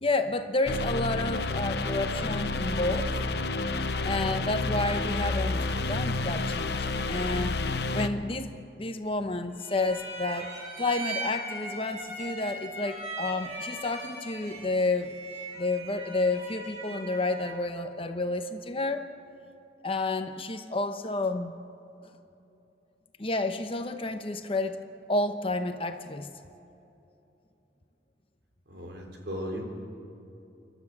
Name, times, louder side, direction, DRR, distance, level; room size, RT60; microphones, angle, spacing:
voice 1, 0.0-3.1 4.0-7.6 7.9-8.5 8.8-15.2 15.6-19.1 19.8-21.5 23.2-24.8 25.1-26.3, left 2 dB, 30° left, 7 dB, 1.0 m, -30 dB
sound 1, 0.7-8.1, left 3 dB, 65° left, 0.9 m, -30 dB
sound 2, 9.6-17.7, right 1 dB, 35° right, 5.9 m, -39 dB
voice 2, 28.7-29.6, equal, 70° right, 1 dB, 3.8 m, -36 dB
29.5 x 12.0 x 7.4 m, 2.9 s
head